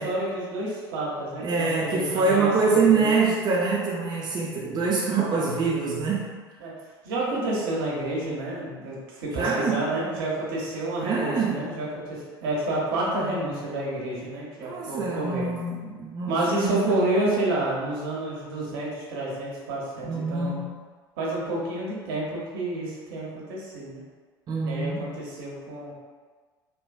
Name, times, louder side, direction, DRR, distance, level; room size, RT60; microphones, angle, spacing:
voice 1, 0.0-3.1 6.6-6.7 7.0-15.5 16.3-20.6 21.2-24.0 24.6-26.0, right 1 dB, 65° right, -4 dB, 0.8 m, -29 dB
voice 2, 1.4-6.3 9.3-9.9 11.0-11.7 14.6-17.4 20.0-20.8 24.5-25.2, right 4 dB, 35° right, -3 dB, 0.5 m, -25 dB
3.5 x 2.4 x 2.2 m, 1.5 s
hypercardioid pair, 65°, 13 cm